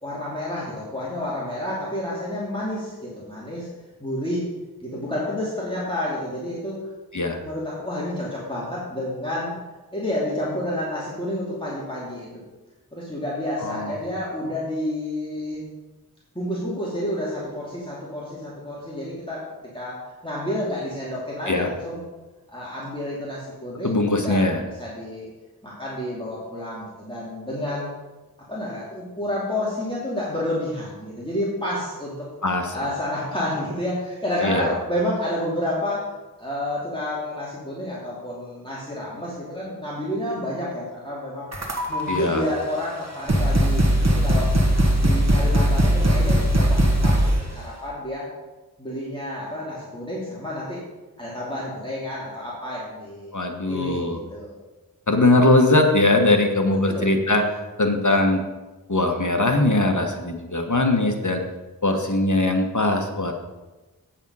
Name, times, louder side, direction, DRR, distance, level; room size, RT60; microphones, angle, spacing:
voice 1, 0.0-3.7 4.0-4.5 4.8-6.9 7.4-9.5 9.9-12.4 12.9-15.6 16.3-19.4 19.7-22.1 22.5-25.3 25.6-27.9 28.5-32.3 32.7-36.1 36.4-41.5 41.9-44.6 44.9-48.3 48.8-50.8 51.2-53.3 53.7-54.5 56.8-57.1, left 1 dB, 15° left, -7 dB, 2.5 m, -30 dB
voice 2, 13.6-13.9 21.5-21.7 23.8-24.6 32.4-32.7 34.4-34.7 42.1-42.4 53.3-54.2 55.1-57.4 57.8-58.4 58.9-61.4 61.8-63.3, left 2 dB, 50° left, 4 dB, 1.3 m, -20 dB
sound 1, 41.5-42.2 42.9-43.0 43.3-47.5, equal, 45° right, 1.5 m, -19 dB
8.7 x 7.3 x 5.5 m, 1.1 s
wide cardioid pair, 40°, 37 cm